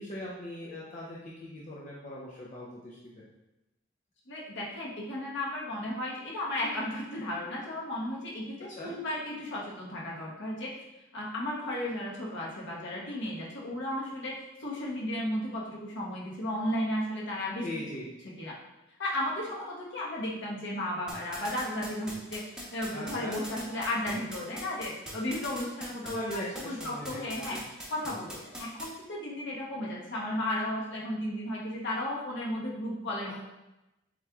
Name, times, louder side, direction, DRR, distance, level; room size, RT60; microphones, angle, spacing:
voice 1, 0.0-3.2 8.7-8.9 17.6-18.1 22.9-23.4 26.0-27.2 27.5-27.6 33.3-33.4, left 1 dB, 40° left, -5 dB, 0.6 m, -39 dB
voice 2, 4.3-10.8 11.1-17.6 18.4-18.6 19.0-22.4 22.7-26.1 26.7-27.6 27.9-33.3, left 1 dB, 65° left, -5 dB, 1.2 m, -34 dB
sound 1, 21.1-28.9, equal, 5° right, 0.9 m, -41 dB
7.4 x 3.0 x 2.3 m, 0.98 s
head